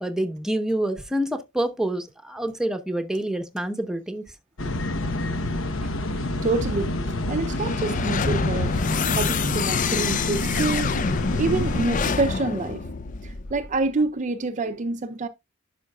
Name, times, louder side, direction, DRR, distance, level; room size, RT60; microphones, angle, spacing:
voice 1, 0.0-4.2 4.6-4.7, right 1 dB, 5° right, 0.9 m, -27 dB
sound 1, 4.6-11.8, left 1 dB, 70° left, 1.0 m, -28 dB
voice 2, 6.1-6.9 7.3-12.9 13.2-15.3, right 3 dB, 35° right, 0.5 m, -27 dB
sound 2, 7.5-13.8, left 5 dB, 40° left, 0.5 m, -27 dB
11.5 x 5.7 x 2.3 m
head